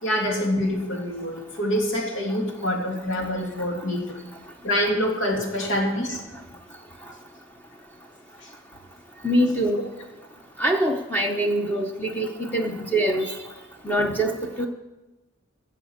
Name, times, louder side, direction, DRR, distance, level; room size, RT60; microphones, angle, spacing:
voice 1, 0.0-4.2 4.6-6.2 8.4-8.5 14.0-14.1, equal, 85° left, 0 dB, 2.9 m, -26 dB
voice 2, 9.2-9.8 10.6-13.4 13.8-14.7, right 1 dB, 10° left, 2 dB, 0.8 m, -24 dB
16.0 x 7.2 x 7.3 m, 1.1 s
head